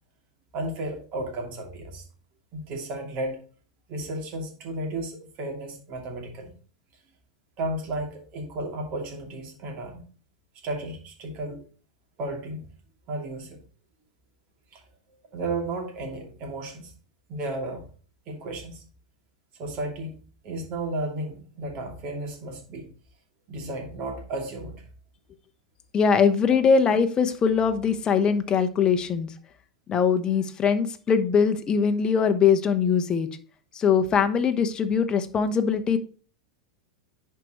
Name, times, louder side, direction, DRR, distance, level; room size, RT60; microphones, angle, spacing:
voice 1, 0.5-2.0 2.5-3.4 3.9-6.5 7.6-10.0 10.6-11.6 12.2-12.7 13.1-13.6 14.7-14.8 15.3-16.9 17.3-17.8 18.3-18.8 19.6-22.9 23.5-24.8, right 2 dB, 45° right, 1 dB, 2.7 m, -33 dB
voice 2, 25.9-29.3 29.9-33.3 33.7-36.0, left 6 dB, 25° left, 7 dB, 0.9 m, -22 dB
10.5 x 4.7 x 3.0 m, 0.40 s
hypercardioid pair, 115°, 3 cm